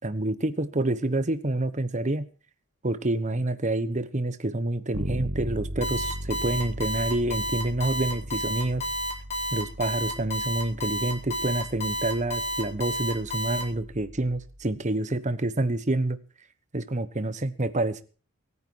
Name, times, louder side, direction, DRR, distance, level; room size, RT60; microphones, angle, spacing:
voice 1, 0.0-2.3 2.8-8.9 9.5-16.2 16.7-18.0, right 2 dB, 35° right, 1.1 m, -28 dB
Bass guitar, 4.9-14.7, right 1 dB, 75° right, 1.7 m, -38 dB
Alarm, 5.8-13.6, equal, 30° left, 4.4 m, -30 dB
23.0 x 9.8 x 4.6 m
head